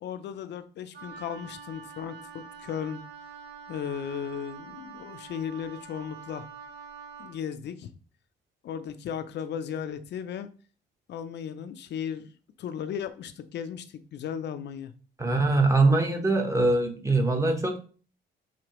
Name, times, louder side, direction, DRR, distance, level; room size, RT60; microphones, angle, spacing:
voice 1, 0.0-3.0 3.7-6.5 7.2-7.9 8.6-10.5 11.1-12.3 12.6-14.9, left 8 dB, 60° left, 10 dB, 0.5 m, -36 dB
Wind instrument woodwind instrument, 0.9-7.4, right 6 dB, 60° right, 1.0 m, -45 dB
voice 2, 15.2-17.8, right 2 dB, 15° right, 4 dB, 1.0 m, -23 dB
5.0 x 2.8 x 3.0 m, 0.38 s
cardioid pair, 90°, 20 cm